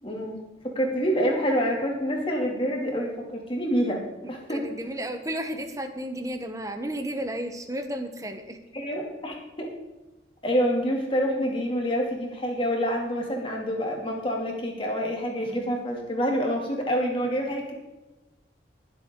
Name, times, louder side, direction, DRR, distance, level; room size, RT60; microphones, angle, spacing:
voice 1, 0.0-0.4 0.7-4.0 4.3-4.6 8.7-9.7 10.4-17.7, equal, 30° left, 0 dB, 2.5 m, -27 dB
voice 2, 4.2-8.6, right 1 dB, 15° right, 7 dB, 1.0 m, -33 dB
21.0 x 7.9 x 3.8 m, 1.1 s
head